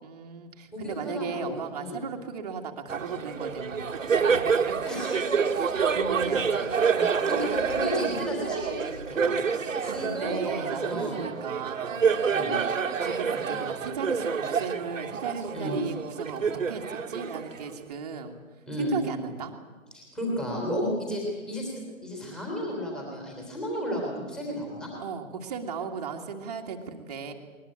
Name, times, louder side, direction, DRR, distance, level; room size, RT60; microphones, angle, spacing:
voice 1, 0.0-4.8 5.5-6.9 9.2-12.1 13.0-18.4 18.8-19.5 25.0-27.3, right 6 dB, 30° right, 3 dB, 1.9 m, -36 dB
voice 2, 0.7-2.0 4.9-5.3 6.9-9.4 9.8-11.2 12.3-12.6 15.5-15.8 18.7-19.0 19.9-21.7 22.0-24.9, equal, ahead, -2 dB, 3.2 m, -33 dB
Laughter, 2.9-17.9, right 6 dB, 65° right, 1.8 m, -28 dB
21.0 x 20.5 x 8.7 m, 1.4 s
hypercardioid pair, 160°, 42 cm